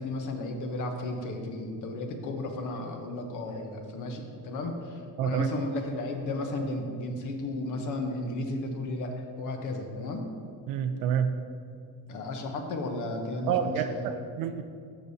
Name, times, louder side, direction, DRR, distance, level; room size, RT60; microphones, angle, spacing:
voice 1, 0.0-10.3 12.1-14.1, left 2 dB, 55° left, 4 dB, 0.9 m, -34 dB
voice 2, 10.7-11.3 13.5-14.6, right 8 dB, 65° right, 9 dB, 0.5 m, -28 dB
13.5 x 5.1 x 2.7 m, 2.3 s
cardioid pair, 160°, 37 cm